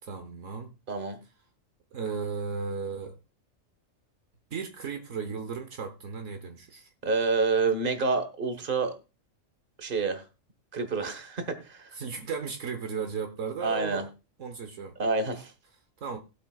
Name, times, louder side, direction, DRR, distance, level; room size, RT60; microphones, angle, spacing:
voice 1, 0.0-0.7 1.9-3.2 4.5-6.9 11.9-14.1 14.4-14.9 16.0-16.2, right 5 dB, 70° right, 1.4 m, -35 dB
voice 2, 0.9-1.2 7.0-8.9 9.8-10.2 10.7-11.9 13.6-14.1 15.0-15.5, right 4 dB, 40° right, 1.6 m, -28 dB
18.5 x 8.3 x 2.3 m
omnidirectional pair, 1.4 m